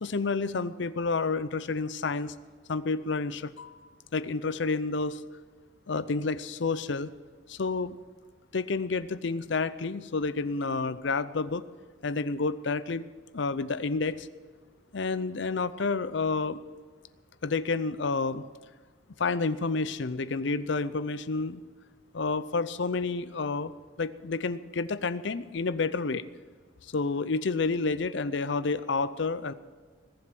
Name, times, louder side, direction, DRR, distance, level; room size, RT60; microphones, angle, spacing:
voice 1, 0.0-2.4 2.7-3.8 4.1-5.2 5.9-7.1 7.5-8.0 8.5-11.6 12.0-13.0 13.3-14.3 14.9-16.6 17.4-18.4 19.2-21.6 22.1-23.7 24.0-26.2 26.8-29.5, left 4 dB, 65° left, 15 dB, 0.6 m, -29 dB
20.5 x 7.8 x 7.6 m, 1.5 s
head